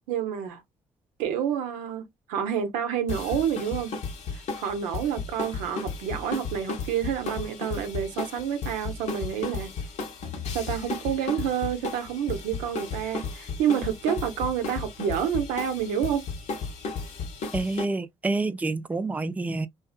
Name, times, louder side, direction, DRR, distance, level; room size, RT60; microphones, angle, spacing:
voice 1, 0.1-0.6 1.2-3.9 4.3-9.7 10.5-16.2, right 8 dB, 90° right, 0.6 m, -28 dB
sound 1, 3.1-17.9, left 4 dB, 65° left, 0.9 m, -34 dB
voice 2, 17.5-19.7, right 3 dB, 10° right, 0.3 m, -28 dB
2.6 x 2.3 x 2.3 m
supercardioid pair, 60°, 13 cm